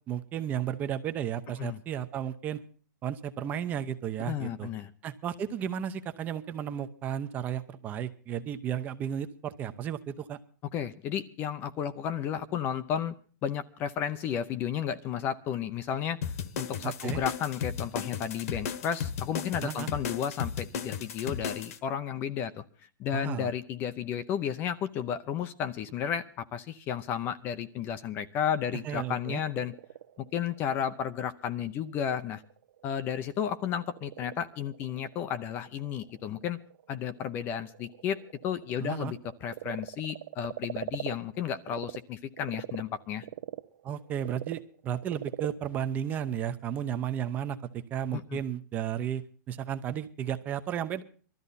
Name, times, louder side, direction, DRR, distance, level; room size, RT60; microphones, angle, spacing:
voice 1, 0.1-2.6 3.0-4.7 5.0-10.4 16.8-17.2 19.6-19.9 23.1-23.5 28.8-29.4 38.8-39.1 43.8-51.0, right 9 dB, 15° right, 11 dB, 0.8 m, -33 dB
voice 2, 4.3-4.9 10.7-13.1 13.4-16.2 16.6-22.6 23.0-29.7 30.2-32.4 32.8-36.6 36.9-43.3 48.1-48.4, left 9 dB, 20° left, 12 dB, 0.6 m, -33 dB
sound 1, 16.2-21.8, left 7 dB, 50° left, 1.4 m, -35 dB
Frog, 29.2-42.0 42.3-47.0, right 11 dB, 70° right, 1.0 m, -43 dB
20.0 x 13.5 x 4.0 m, 0.41 s
supercardioid pair, 175°, 10 cm